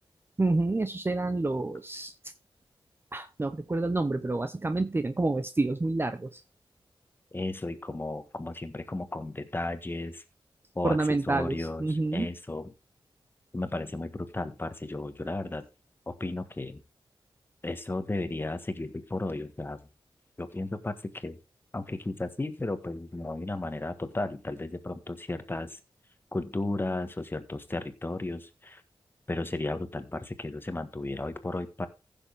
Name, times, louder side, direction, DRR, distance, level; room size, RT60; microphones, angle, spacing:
voice 1, 0.4-2.3 3.1-6.4 10.8-12.3, right 2 dB, 25° right, 10 dB, 0.8 m, -28 dB
voice 2, 7.3-10.2 10.7-12.7 13.5-15.7 16.1-16.8 17.6-19.8 20.4-21.4 21.7-25.8 26.3-28.8 29.3-31.9, left 2 dB, 25° left, 10 dB, 1.5 m, -34 dB
15.5 x 7.1 x 3.6 m, 0.28 s
wide cardioid pair, 95°, 9 cm